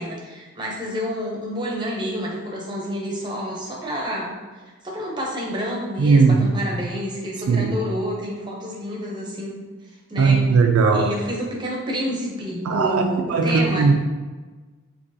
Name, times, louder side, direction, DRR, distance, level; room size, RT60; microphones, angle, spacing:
voice 1, 0.0-10.4 10.9-13.9, equal, 20° right, -2 dB, 0.6 m, -29 dB
voice 2, 6.0-6.5 7.5-7.7 10.2-11.1 12.6-13.9, right 4 dB, 75° right, 4 dB, 0.3 m, -18 dB
3.9 x 2.8 x 2.7 m, 1.3 s
head